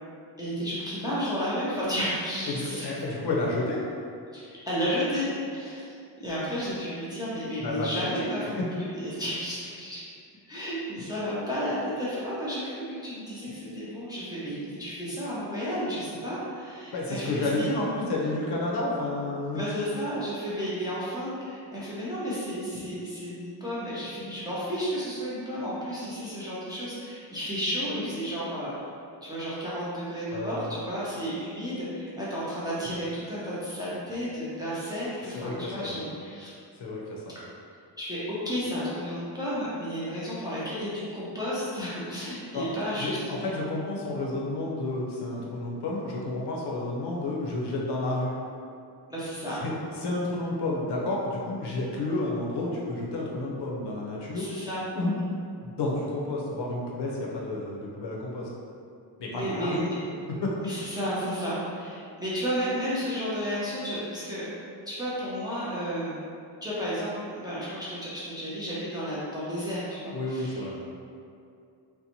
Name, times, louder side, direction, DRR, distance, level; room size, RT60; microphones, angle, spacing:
voice 1, 0.4-2.9 4.3-6.0 6.2-8.6 8.9-10.0 10.5-17.7 19.5-28.7 29.2-36.5 38.0-43.2 49.1-49.6 54.3-54.9 59.3-59.9 60.6-64.5 64.9-66.2 66.6-70.6, equal, 10° right, -10 dB, 0.4 m, -32 dB
voice 2, 2.5-3.8 6.4-6.6 7.6-8.3 16.9-19.6 30.3-30.7 35.3-36.0 36.8-37.2 42.5-42.7 43.0-48.4 49.5-54.5 54.9-55.2 55.6-58.5 59.2-59.9 60.4-60.5 70.1-70.8, left 2 dB, 65° left, -3 dB, 0.6 m, -31 dB
2.6 x 2.1 x 2.8 m, 2.5 s
wide cardioid pair, 170°, 45 cm